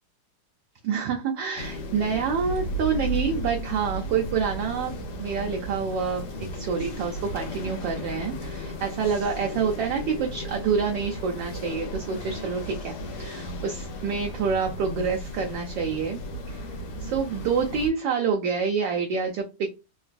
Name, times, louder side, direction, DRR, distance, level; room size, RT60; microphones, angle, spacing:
voice 1, 0.8-4.9 5.2-16.2 16.5-16.7 17.0-19.7, right 6 dB, 75° right, 1 dB, 1.1 m, -27 dB
sound 1, 1.6-17.9, equal, 85° left, 1.8 m, -35 dB
3.8 x 2.3 x 2.5 m, 0.27 s
omnidirectional pair, 2.4 m